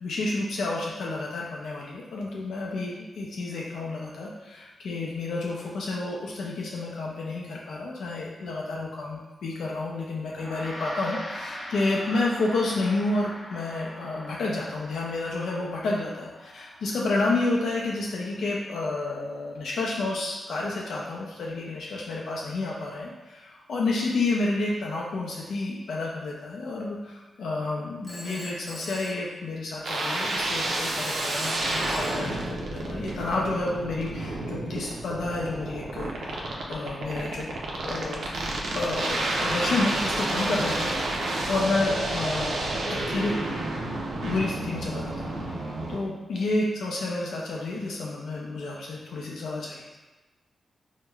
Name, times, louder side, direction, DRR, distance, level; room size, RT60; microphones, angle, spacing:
voice 1, 0.0-37.5 37.8-38.2 38.6-43.3 44.2-49.9, left 2 dB, 90° left, -3 dB, 0.4 m, -30 dB
Gong, 10.3-19.9, equal, 55° left, 0.8 m, -42 dB
Telephone, 28.0-30.0 31.0-33.0, equal, 15° left, 0.4 m, -43 dB
sound 1, 29.8-46.0, right 2 dB, 85° right, 0.5 m, -30 dB
4.5 x 2.1 x 2.3 m, 1.2 s
wide cardioid pair, 175°, 0 cm